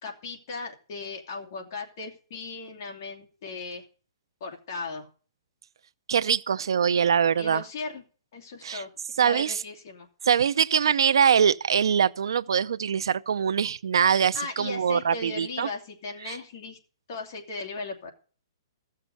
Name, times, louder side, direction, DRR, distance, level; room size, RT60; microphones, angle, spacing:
voice 1, 0.0-3.8 4.4-5.1 7.4-8.0 8.3-8.9 9.2-10.1 14.3-16.8 17.1-18.1, left 3 dB, 40° left, 2.7 m, -37 dB
voice 2, 6.1-7.6 8.6-8.8 9.2-9.6 10.2-15.7 16.2-16.4, right 7 dB, 80° right, 0.6 m, -23 dB
15.5 x 6.7 x 6.3 m
hypercardioid pair, 170°, 2 cm